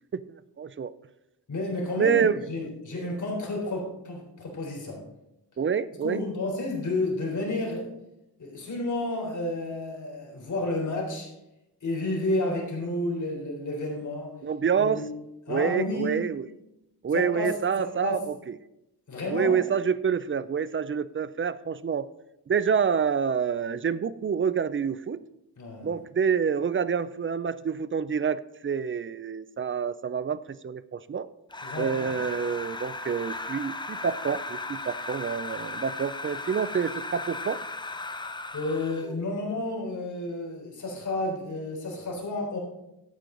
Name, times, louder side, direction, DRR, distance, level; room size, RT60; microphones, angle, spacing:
voice 1, 0.1-0.9 2.0-2.4 5.6-6.2 14.4-15.0 15.5-16.5 17.0-18.6 19.3-22.1 22.5-25.2 25.8-31.3 31.8-37.6, right 6 dB, 30° right, 16 dB, 0.4 m, -27 dB
voice 2, 1.5-5.0 6.0-7.9 8.4-11.3 11.8-14.3 14.8-15.0 15.5-16.2 17.1-17.5 17.8-18.2 19.1-19.6 25.6-25.9 31.6-32.1 38.5-42.6, left 2 dB, 45° left, -1 dB, 3.9 m, -31 dB
sound 1, 31.5-39.1, left 2 dB, 10° left, 0.6 m, -36 dB
12.0 x 8.6 x 3.9 m, 0.88 s
cardioid pair, 105°, 41 cm